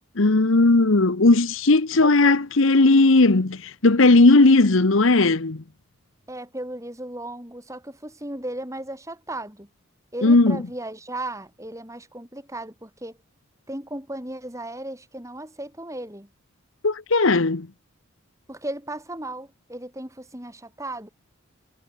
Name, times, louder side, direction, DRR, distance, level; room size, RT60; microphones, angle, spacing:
voice 1, 0.2-5.6 10.2-10.6 16.8-17.7, left 2 dB, 65° left, 1.0 m, -17 dB
voice 2, 2.0-2.4 6.3-9.7 10.1-13.2 13.7-16.3 18.5-21.1, right 1 dB, 15° right, 4.4 m, -36 dB
head